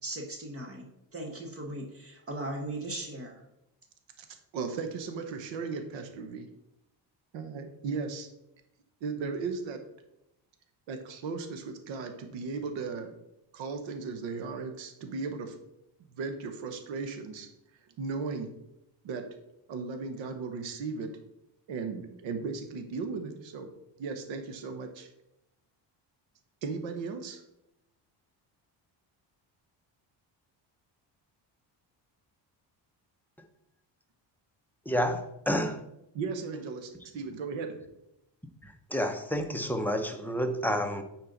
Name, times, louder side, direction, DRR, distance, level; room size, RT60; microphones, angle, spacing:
voice 1, 0.0-3.4, right 1 dB, 30° right, 2 dB, 1.1 m, -38 dB
voice 2, 4.2-6.5 7.3-8.3 9.0-9.8 10.9-13.1 13.5-15.6 16.1-17.5 18.0-18.5 19.0-19.2 19.7-21.1 21.7-23.7 24.0-25.1 26.6-27.4 36.1-37.8, right 4 dB, 90° right, 6 dB, 1.1 m, -36 dB
voice 3, 34.9-35.8 38.6-41.0, equal, 5° left, 4 dB, 0.5 m, -30 dB
9.1 x 4.4 x 3.9 m, 0.85 s
cardioid pair, 150°, 44 cm